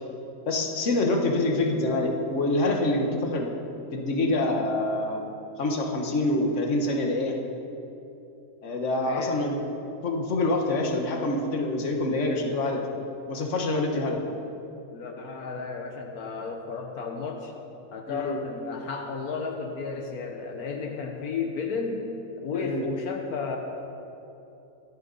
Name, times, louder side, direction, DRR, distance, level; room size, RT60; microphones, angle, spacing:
voice 1, 0.5-3.5 3.9-5.2 5.6-7.3 8.6-9.5 10.0-12.8 13.3-14.2 18.1-18.4 22.5-22.8, left 2 dB, 55° left, 1 dB, 1.7 m, -26 dB
voice 2, 9.0-9.5 14.9-17.5 17.9-22.1 22.4-23.6, left 4 dB, 80° left, 2 dB, 1.6 m, -33 dB
25.0 x 10.0 x 4.1 m, 2.9 s
omnidirectional pair, 1.6 m